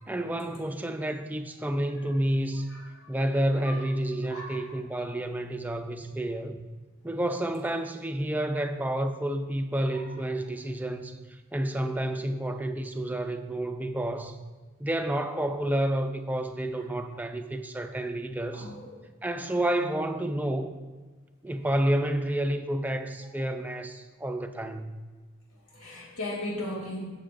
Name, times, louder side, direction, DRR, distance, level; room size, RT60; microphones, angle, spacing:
voice 1, 0.1-2.7 3.1-6.6 7.0-14.4 14.8-18.7 19.2-20.7 21.4-24.9, right 1 dB, 10° right, 6 dB, 0.4 m, -30 dB
voice 2, 2.7-3.1 3.6-3.8 4.2-5.1 9.9-10.2 16.8-16.9 18.5-19.0 19.4-19.6 25.5-27.0, left 1 dB, 85° left, -2 dB, 2.7 m, -39 dB
17.0 x 6.7 x 2.6 m, 1.4 s
head